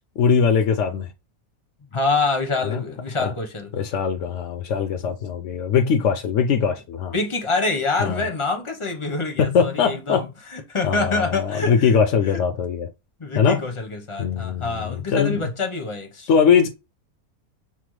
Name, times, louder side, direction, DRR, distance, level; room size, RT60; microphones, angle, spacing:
voice 1, 0.2-1.1 2.6-2.8 3.2-3.3 3.7-7.1 8.0-8.3 9.4-10.3 10.8-12.9 13.4-13.6 14.2-15.5 16.3-16.7, left 6 dB, 65° left, 0.8 m, -21 dB
voice 2, 1.9-3.7 7.1-11.9 12.3-12.4 13.2-16.3, left 3 dB, 30° left, 0.7 m, -26 dB
5.8 x 2.0 x 3.1 m
omnidirectional pair, 1.6 m